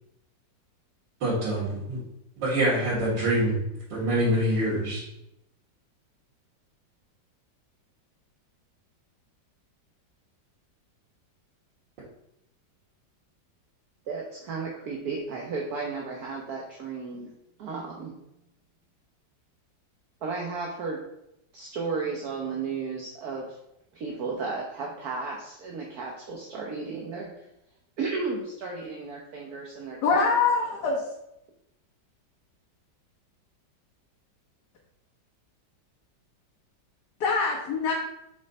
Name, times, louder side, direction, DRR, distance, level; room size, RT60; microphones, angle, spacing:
voice 1, 1.2-2.0 2.4-3.6 3.9-5.0, right 1 dB, 80° right, -10 dB, 2.5 m, -25 dB
voice 2, 14.1-17.3 17.6-18.2 20.2-21.0 21.5-23.4 23.9-27.3 28.0-30.3, right 4 dB, 60° right, -1 dB, 1.3 m, -34 dB
voice 3, 30.0-31.0 37.2-37.9, left 4 dB, 65° left, -3 dB, 1.5 m, -24 dB
5.4 x 3.9 x 5.2 m, 0.83 s
omnidirectional pair, 2.0 m